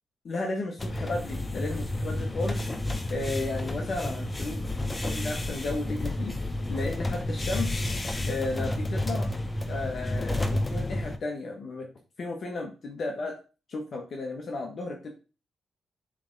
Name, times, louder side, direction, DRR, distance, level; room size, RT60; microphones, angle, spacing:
voice 1, 0.2-2.7 3.1-4.6 5.0-6.4 6.7-7.7 8.3-9.3 9.7-11.9 12.2-13.3 13.7-15.1, left 2 dB, 60° left, 1 dB, 1.2 m, -34 dB
sound 1, 0.8-11.2, left 1 dB, 25° left, 1.0 m, -30 dB
7.0 x 3.4 x 3.9 m, 0.33 s
supercardioid pair, 55°, 0 cm